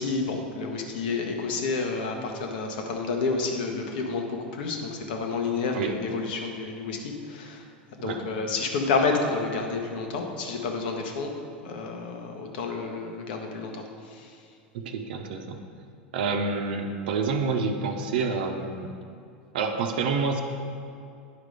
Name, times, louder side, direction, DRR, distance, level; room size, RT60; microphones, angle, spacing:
voice 1, 0.0-7.7 8.0-11.3 11.6-14.4, left 4 dB, 65° left, 3 dB, 1.3 m, -30 dB
voice 2, 14.7-15.6 16.1-18.9 19.5-20.4, right 4 dB, 70° right, 3 dB, 0.8 m, -28 dB
9.8 x 5.1 x 5.0 m, 2.5 s
hypercardioid pair, 90°, 5 cm